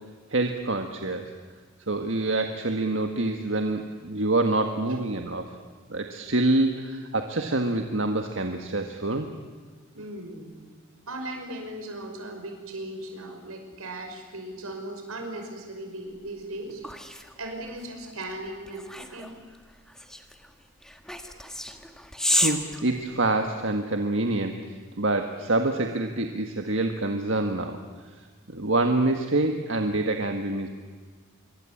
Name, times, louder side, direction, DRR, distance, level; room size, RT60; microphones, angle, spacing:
voice 1, 0.3-1.3 1.9-5.6 5.9-9.3 22.3-27.8 28.5-30.7, right 2 dB, 60° right, 5 dB, 1.7 m, -26 dB
voice 2, 4.9-5.4 10.0-10.5 11.1-16.8 17.4-19.3, right 1 dB, 90° right, 4 dB, 5.8 m, -38 dB
sound 1, 16.2-23.7, left 1 dB, 5° left, 1.6 m, -32 dB
26.5 x 24.5 x 8.7 m, 1.5 s
head